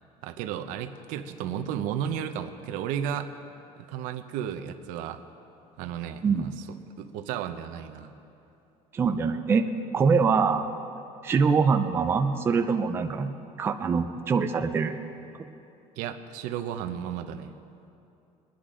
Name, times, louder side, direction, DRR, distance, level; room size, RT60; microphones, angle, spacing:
voice 1, 0.2-3.3 3.9-5.2 5.8-6.7 7.0-8.1 16.0-17.5, right 9 dB, 90° right, 7 dB, 0.8 m, -33 dB
voice 2, 8.9-9.7 9.9-10.7 11.2-13.3 13.6-15.0, right 5 dB, 20° right, 6 dB, 0.4 m, -24 dB
21.5 x 10.0 x 3.7 m, 2.7 s
cardioid pair, 180°, 13 cm